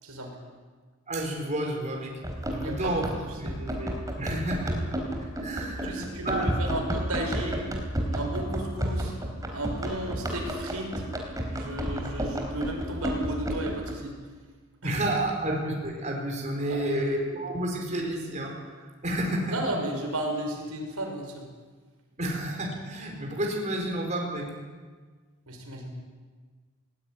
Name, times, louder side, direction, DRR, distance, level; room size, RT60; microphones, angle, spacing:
voice 1, 0.0-0.4 2.6-3.6 5.8-7.7 8.1-9.1 9.5-10.9 11.5-14.2 14.8-15.0 16.7-17.1 19.5-21.4 25.5-25.9, right 1 dB, 85° right, 2 dB, 5.6 m, -34 dB
voice 2, 1.1-2.1 2.5-3.1 3.4-4.8 5.2-6.5 14.8-18.8 19.0-19.6 22.2-24.5, right 1 dB, 35° right, 0 dB, 4.7 m, -30 dB
Run, 2.2-13.9, right 1 dB, 15° right, 4.0 m, -31 dB
20.0 x 20.0 x 9.5 m, 1.5 s
head